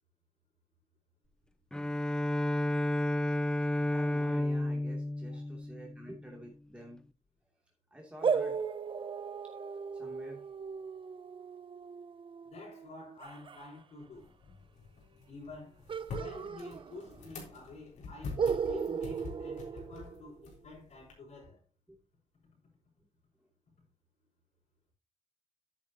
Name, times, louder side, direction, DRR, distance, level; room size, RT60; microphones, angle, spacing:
Bowed string instrument, 1.7-6.3, left 1 dB, 5° left, 0.6 m, -32 dB
voice 1, 3.8-7.0 7.9-8.6 10.0-10.4 21.9-22.0, right 1 dB, 10° right, 2.8 m, -49 dB
sound 1, 8.2-13.7 15.9-17.4 17.6-17.7 18.4-20.6, right 6 dB, 45° right, 0.6 m, -36 dB
voice 2, 12.4-14.3 15.3-15.8 16.2-21.6, left 3 dB, 70° left, 5.4 m, -49 dB
sound 2, 14.1-21.1, left 4 dB, 90° left, 3.7 m, -46 dB
9.9 x 9.2 x 2.9 m
cardioid pair, 85°, 12 cm